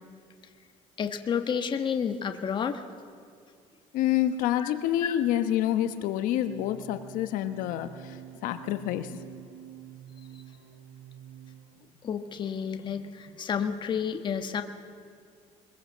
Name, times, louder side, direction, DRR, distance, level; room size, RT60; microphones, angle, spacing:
voice 1, 1.0-2.8 4.6-4.7 5.0-5.1 12.0-14.6, left 7 dB, 35° left, 7 dB, 1.4 m, -30 dB
voice 2, 3.9-8.2 8.4-9.2, left 12 dB, 75° left, 10 dB, 1.2 m, -27 dB
sound 1, 6.3-12.0, right 10 dB, 75° right, 1.4 m, -48 dB
22.0 x 22.0 x 7.3 m, 2.3 s
cardioid pair, 140°, 14 cm